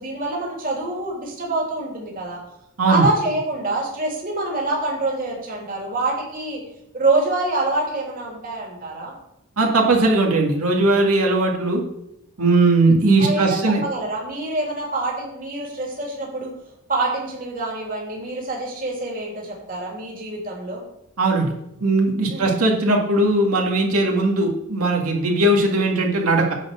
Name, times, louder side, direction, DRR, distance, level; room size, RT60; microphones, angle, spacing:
voice 1, 0.0-2.4 2.9-6.6 6.9-9.1 13.2-16.5 16.9-20.8 22.3-22.5, right 2 dB, 40° right, -3 dB, 2.8 m, -26 dB
voice 2, 9.6-11.8 12.4-13.8 21.2-21.5 21.8-26.5, right 2 dB, 85° right, 0 dB, 2.0 m, -18 dB
10.5 x 4.4 x 7.4 m, 0.82 s
head